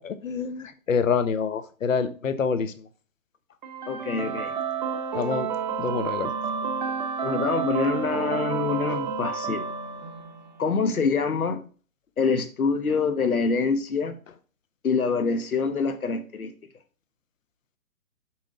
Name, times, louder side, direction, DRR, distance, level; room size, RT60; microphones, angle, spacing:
voice 1, 0.0-2.9 5.1-5.5 5.8-6.3, left 6 dB, 65° left, 1.1 m, -26 dB
sound 1, 3.6-10.6, right 6 dB, 35° right, 0.8 m, -30 dB
voice 2, 3.9-4.5 7.2-9.7 10.6-11.6 12.2-14.2 14.8-16.5, left 4 dB, 85° left, 1.4 m, -25 dB
6.2 x 6.0 x 3.7 m
hypercardioid pair, 155°, 42 cm